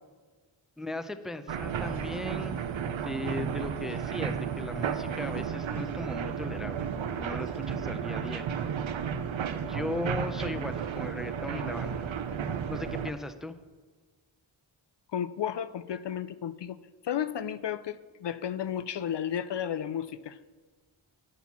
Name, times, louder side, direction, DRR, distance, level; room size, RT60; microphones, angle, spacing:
voice 1, 0.8-8.5 9.7-12.1 12.7-13.5, left 1 dB, ahead, 10 dB, 0.5 m, -37 dB
sound 1, 1.5-13.1, right 7 dB, 70° right, 0.7 m, -33 dB
voice 2, 15.1-16.8 17.0-20.4, left 9 dB, 65° left, 14 dB, 0.5 m, -33 dB
9.3 x 6.2 x 7.1 m, 1.4 s
wide cardioid pair, 60°, 48 cm